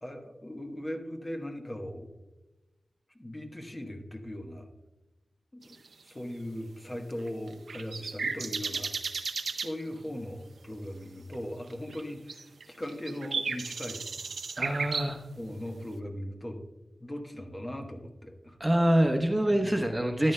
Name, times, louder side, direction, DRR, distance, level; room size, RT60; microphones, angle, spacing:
voice 1, 0.0-2.1 3.1-4.7 5.5-5.8 6.0-8.9 9.5-14.1 15.4-16.6 17.0-18.6 19.5-19.8, left 1 dB, 25° left, 3 dB, 1.2 m, -39 dB
sound 1, 5.6-5.9 7.1-9.7 11.3-11.4 11.7-12.0 12.3-15.1, right 4 dB, 80° right, 0.6 m, -34 dB
voice 2, 14.5-15.2 18.6-20.3, right 1 dB, 15° right, 3 dB, 1.1 m, -25 dB
13.5 x 10.5 x 2.2 m, 1.1 s
cardioid pair, 60°, 0 cm